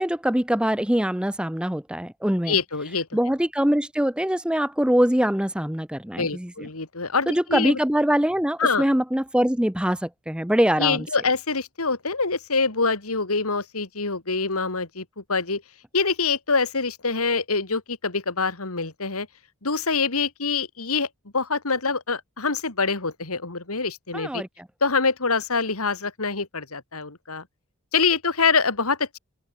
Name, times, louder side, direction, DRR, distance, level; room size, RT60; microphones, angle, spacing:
voice 1, 0.0-2.6 3.1-6.7 7.3-11.1 24.1-24.7, equal, 5° right, 0.7 m, -23 dB
voice 2, 2.5-3.1 6.1-7.8 8.6-8.8 10.8-15.6 15.9-19.3 19.6-21.1 21.3-24.4 24.8-27.4 27.9-29.2, left 4 dB, 80° left, 2.6 m, -25 dB
open air
head